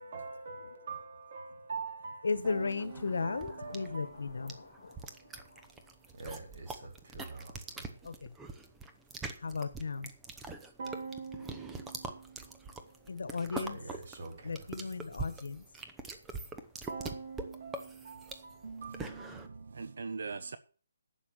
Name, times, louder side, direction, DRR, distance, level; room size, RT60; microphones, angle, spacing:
voice 1, 0.0-5.8 6.1-8.0 10.8-14.7 16.9-20.0, right 4 dB, 50° right, 4.1 m, -45 dB
voice 2, 2.2-5.0 8.0-8.3 9.4-10.1 13.1-13.8 14.4-15.6, left 4 dB, 75° left, 1.4 m, -35 dB
sound 1, 2.4-19.5, right 3 dB, 5° right, 0.8 m, -44 dB
voice 3, 18.6-20.6, right 4 dB, 65° right, 0.7 m, -42 dB
11.5 x 7.5 x 6.6 m
hypercardioid pair, 165°, 0 cm